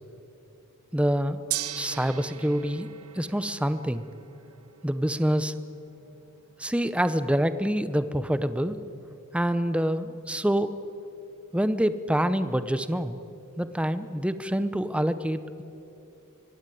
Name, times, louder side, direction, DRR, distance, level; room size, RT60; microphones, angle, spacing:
voice 1, 0.9-1.4 1.7-2.9 3.2-4.0 4.8-5.5 6.6-8.8 9.3-10.7 11.5-13.2 13.6-15.6, equal, 5° right, 12 dB, 0.8 m, -26 dB
Gong, 1.5-11.7, right 13 dB, 70° right, 1.0 m, -42 dB
24.5 x 16.5 x 9.3 m, 2.7 s
head